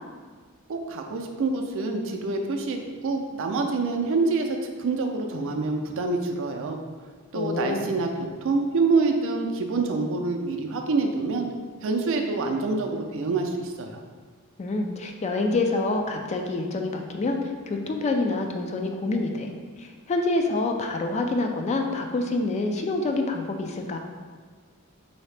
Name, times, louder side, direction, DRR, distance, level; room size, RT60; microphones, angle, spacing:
voice 1, 0.7-6.8 7.3-8.1 8.4-11.5 11.8-14.0, right 3 dB, 65° right, 3 dB, 0.4 m, -26 dB
voice 2, 7.3-7.8 8.2-8.3 14.6-19.5 19.8-24.0, left 2 dB, 30° left, 4 dB, 0.3 m, -27 dB
4.0 x 2.7 x 3.2 m, 1.5 s
head